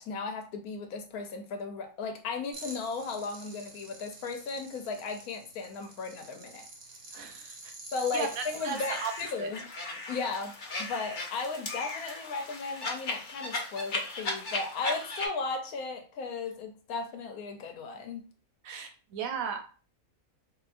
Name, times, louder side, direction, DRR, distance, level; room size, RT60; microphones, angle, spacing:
voice 1, 0.0-6.7 7.9-9.6 10.1-18.2, left 4 dB, 90° left, 1.2 m, -36 dB
sound 1, 2.5-9.3, right 2 dB, 50° right, 0.8 m, -48 dB
voice 2, 7.1-7.7 8.1-9.1 9.4-9.5 18.6-19.6, right 6 dB, 75° right, 1.0 m, -36 dB
sound 2, 8.2-15.3, left 2 dB, 45° left, 0.7 m, -37 dB
3.8 x 2.6 x 2.5 m
omnidirectional pair, 1.5 m